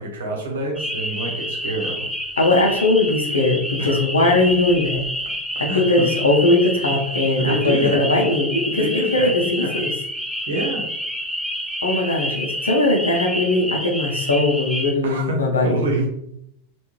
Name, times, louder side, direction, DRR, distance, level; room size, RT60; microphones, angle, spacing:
voice 1, 0.0-2.1 3.8-4.0 5.7-6.1 6.9-7.0 7.4-8.1 8.7-9.8 10.5-10.8 15.0-16.1, right 1 dB, 65° right, 0 dB, 0.9 m, -26 dB
sound 1, 0.8-14.9, equal, ahead, 0.7 m, -28 dB
voice 2, 2.4-5.0 5.6-9.9 11.8-15.8, left 2 dB, 75° left, 2 dB, 0.6 m, -19 dB
3.5 x 2.5 x 2.9 m, 0.73 s
figure-of-eight pair, 90°, 0 cm